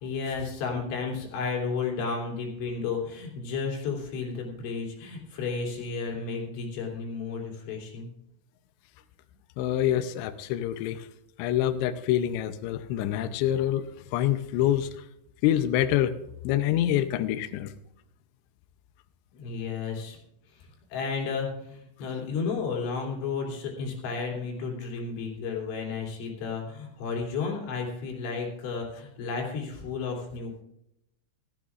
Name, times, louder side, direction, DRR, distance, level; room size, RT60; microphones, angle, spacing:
voice 1, 0.0-8.1 19.3-20.2 20.6-30.6, left 5 dB, 65° left, 0 dB, 5.2 m, -33 dB
voice 2, 9.6-11.1 11.4-13.8 14.1-14.9 15.4-16.1 16.4-17.7, left 12 dB, 85° left, 9 dB, 2.5 m, -26 dB
18.0 x 13.5 x 2.5 m, 0.78 s
omnidirectional pair, 5.9 m